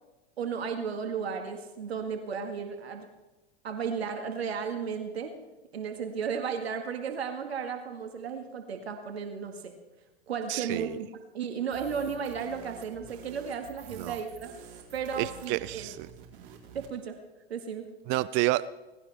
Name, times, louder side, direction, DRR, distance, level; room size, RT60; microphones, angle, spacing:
voice 1, 0.4-3.1 3.6-5.4 5.7-9.7 10.3-11.1 11.3-14.5 14.9-15.9 16.7-17.2 17.5-17.9, right 6 dB, 80° right, 5 dB, 2.0 m, -34 dB
voice 2, 10.5-11.0 14.0-14.2 15.2-16.1 18.1-18.7, right 18 dB, 40° right, 18 dB, 0.5 m, -29 dB
sound 1, 11.7-16.9, right 8 dB, 60° right, 4.0 m, -49 dB
18.5 x 17.0 x 3.5 m, 1.1 s
hypercardioid pair, 95°, 31 cm